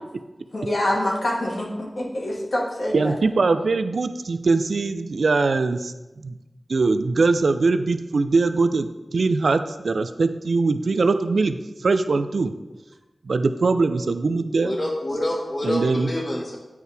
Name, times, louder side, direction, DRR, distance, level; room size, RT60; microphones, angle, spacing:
voice 1, 0.5-3.1, left 1 dB, 70° left, -4 dB, 1.8 m, -25 dB
voice 2, 2.9-6.4 6.7-12.5 13.2-14.8 15.6-16.1, right 3 dB, 85° right, 10 dB, 0.4 m, -22 dB
voice 3, 14.6-16.6, left 1 dB, 45° left, -2 dB, 1.7 m, -27 dB
8.3 x 4.6 x 3.4 m, 1.1 s
wide cardioid pair, 55°, 0 cm